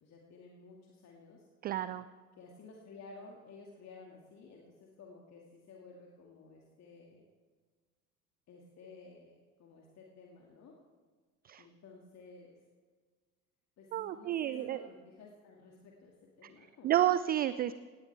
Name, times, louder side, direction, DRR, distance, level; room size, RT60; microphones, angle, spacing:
voice 1, 0.0-1.4 2.3-7.2 8.5-9.3 9.6-10.7 11.6-12.6 13.8-17.0, left 4 dB, 35° left, -1 dB, 2.4 m, -54 dB
voice 2, 1.6-2.0 11.4-11.6 13.9-14.8 16.4-16.5 16.8-17.7, right 12 dB, 25° right, 15 dB, 0.4 m, -30 dB
18.0 x 17.5 x 3.5 m, 1.5 s
figure-of-eight pair, 65°, 43 cm